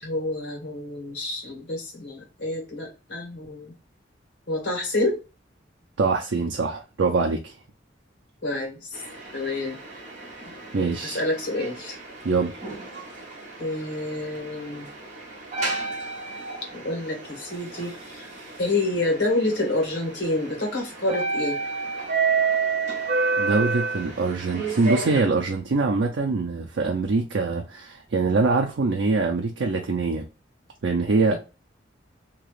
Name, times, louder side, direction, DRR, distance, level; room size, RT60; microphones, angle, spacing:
voice 1, 0.0-3.7 4.5-5.2 8.4-8.8 9.3-9.8 11.1-12.0 13.6-14.9 16.7-18.3 18.6-21.6 31.3-31.4, left 2 dB, 65° left, 1.5 m, -28 dB
voice 2, 6.0-7.5 10.7-11.2 12.2-12.6 23.4-30.2 30.8-31.4, right 3 dB, 75° right, 0.5 m, -24 dB
sound 1, 8.9-25.2, right 4 dB, 40° right, 1.0 m, -30 dB
2.9 x 2.4 x 3.1 m
head